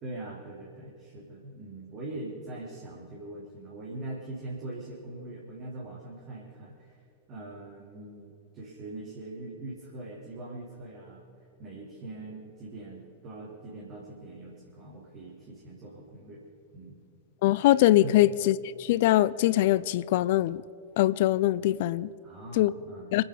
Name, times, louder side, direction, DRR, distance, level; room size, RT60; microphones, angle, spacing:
voice 1, 0.0-7.0 7.3-11.2 11.6-16.4 16.7-17.0 18.0-18.2 22.2-23.2, right 2 dB, 35° right, 3.2 m, -42 dB
voice 2, 17.4-20.6 21.0-22.1 22.5-22.7 23.1-23.2, left 15 dB, 50° left, 0.4 m, -23 dB
25.5 x 8.9 x 5.2 m
figure-of-eight pair, 90°, 0 cm